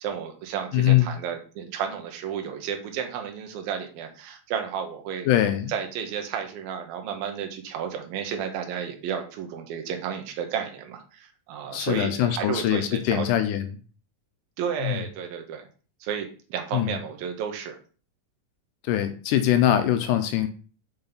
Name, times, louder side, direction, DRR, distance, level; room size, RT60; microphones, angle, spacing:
voice 1, 0.0-5.3 5.7-13.3 14.6-15.7 16.0-17.8, right 8 dB, 80° right, 5 dB, 2.8 m, -32 dB
voice 2, 0.7-1.1 5.3-5.7 11.7-13.7 14.8-15.0 16.7-17.0 18.8-20.5, left 12 dB, 80° left, 9 dB, 1.9 m, -22 dB
7.1 x 4.4 x 4.0 m, 0.39 s
omnidirectional pair, 4.2 m